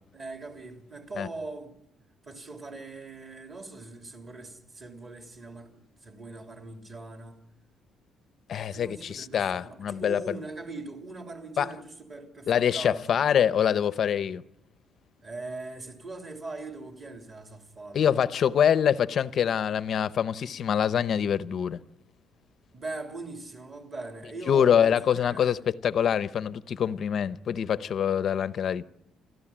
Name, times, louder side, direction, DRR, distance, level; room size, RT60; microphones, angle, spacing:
voice 1, 0.1-1.7 2.2-7.4 8.7-13.0 15.2-18.2 22.7-25.5, right 3 dB, 25° right, 3.4 m, -41 dB
voice 2, 8.5-10.2 11.6-11.7 12.5-14.4 17.9-21.8 24.5-28.8, left 8 dB, 40° left, 0.8 m, -25 dB
29.5 x 14.0 x 8.8 m
cardioid pair, 170°, 0 cm